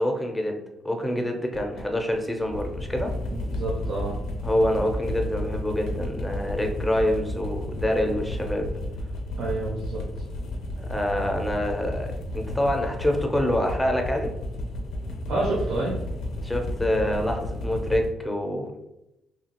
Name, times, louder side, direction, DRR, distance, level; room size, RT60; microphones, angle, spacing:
voice 1, 0.0-3.1 4.4-8.7 10.8-14.3 16.4-18.7, left 1 dB, 10° left, 3 dB, 0.5 m, -26 dB
sound 1, 1.5-18.1, left 1 dB, 85° left, 0.5 m, -32 dB
voice 2, 3.3-4.2 9.3-10.0 15.3-16.0, right 2 dB, 80° right, -4 dB, 0.6 m, -29 dB
2.8 x 2.4 x 2.8 m, 0.88 s
cardioid pair, 90°, 0 cm